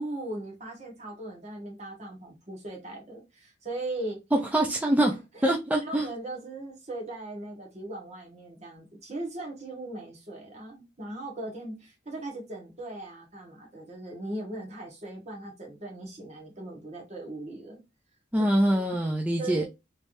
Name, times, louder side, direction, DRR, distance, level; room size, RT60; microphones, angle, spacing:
voice 1, 0.0-4.2 5.1-5.5 5.8-17.8 18.7-18.9 19.4-19.6, right 2 dB, 35° right, 1.4 m, -39 dB
voice 2, 4.5-5.2 5.4-6.1 18.3-19.6, right 1 dB, 10° right, 0.4 m, -24 dB
3.3 x 3.2 x 2.6 m
head